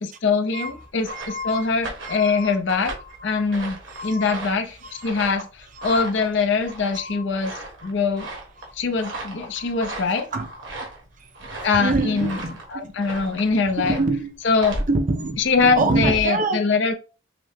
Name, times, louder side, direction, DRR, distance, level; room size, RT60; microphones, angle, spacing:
voice 1, 0.0-2.9 3.2-3.7 4.0-4.8 5.0-8.3 8.8-10.3 11.6-12.4 12.7-14.0 14.4-14.8 15.4-16.9, left 4 dB, 65° left, 0.6 m, -23 dB
sound 1, 0.8-16.1, right 2 dB, 70° right, 1.5 m, -37 dB
voice 2, 1.1-1.7 2.0-2.6 3.0-3.4 3.9-4.4 4.8-5.1 5.7-6.0 6.9-7.2 7.8-7.9 8.6-8.7 9.5-9.8 10.3-10.9 11.2-12.9 13.3-14.3 14.9-16.6, right 2 dB, 40° right, 0.7 m, -27 dB
5.8 x 2.1 x 3.5 m
head